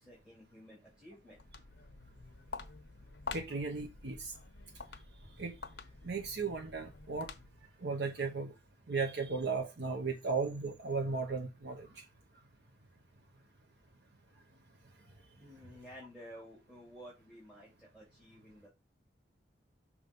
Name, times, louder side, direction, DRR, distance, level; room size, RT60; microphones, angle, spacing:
voice 1, 0.0-1.5 15.0-18.7, equal, 5° right, 3.0 m, -53 dB
Walk footsteps, 1.2-7.8, left 4 dB, 80° left, 1.1 m, -48 dB
voice 2, 3.3-4.3 5.4-5.6 6.0-7.3 7.8-8.5 8.9-12.0, right 4 dB, 70° right, 1.0 m, -36 dB
6.3 x 3.7 x 5.3 m
head